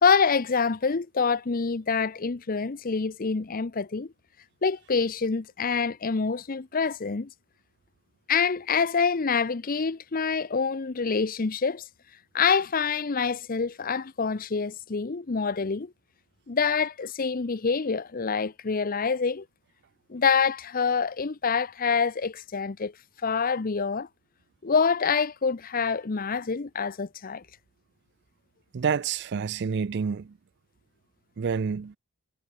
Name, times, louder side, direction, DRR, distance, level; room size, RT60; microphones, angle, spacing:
voice 1, 0.0-4.1 4.6-7.3 8.3-11.8 12.3-15.9 16.5-19.4 20.1-22.9 23.2-24.1 24.6-27.4, left 5 dB, 40° left, 0.6 m, -26 dB
voice 2, 28.7-30.3 31.4-32.0, right 6 dB, 50° right, 0.4 m, -28 dB
head